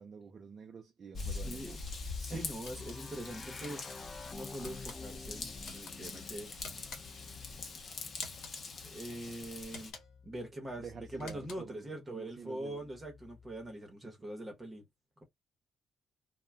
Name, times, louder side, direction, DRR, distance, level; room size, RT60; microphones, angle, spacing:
voice 1, 0.0-1.8 2.3-2.6 10.8-12.9 14.0-14.2, right 6 dB, 50° right, 0.4 m, -48 dB
Raindrop / Vehicle horn car horn honking / Trickle dribble, 1.1-9.9, left 4 dB, 50° left, 0.8 m, -44 dB
voice 2, 1.2-1.8 2.2-3.9 4.3-6.5 8.8-9.9 10.2-14.8, right 1 dB, 25° right, 0.9 m, -43 dB
sound 1, 1.9-11.7 12.7-13.7, left 4 dB, 25° left, 0.4 m, -50 dB
sound 2, 2.6-3.0 3.6-4.0 4.6-5.0 5.6-5.9 6.6-7.2 8.1-8.6 9.6-10.2 11.1-11.8, left 4 dB, 80° left, 0.8 m, -50 dB
2.2 x 2.1 x 3.3 m
cardioid pair, 90°, 0 cm